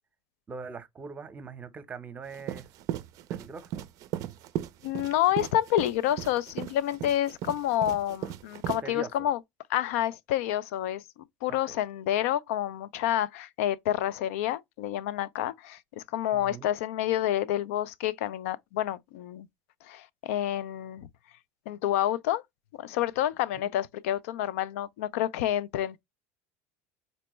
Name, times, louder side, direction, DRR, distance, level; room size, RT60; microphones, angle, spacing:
voice 1, 0.5-2.7 3.3-3.8 8.8-9.3 11.7-11.8 16.3-16.7, right 5 dB, 20° right, 0.7 m, -42 dB
sound 1, 2.3-8.8, right 11 dB, 50° right, 0.4 m, -36 dB
voice 2, 4.8-9.4 9.7-11.0 11.4-19.5 19.9-21.1 21.7-22.4 22.8-26.0, left 12 dB, 85° left, 0.3 m, -29 dB
4.2 x 2.1 x 3.0 m
supercardioid pair, 120°, 7 cm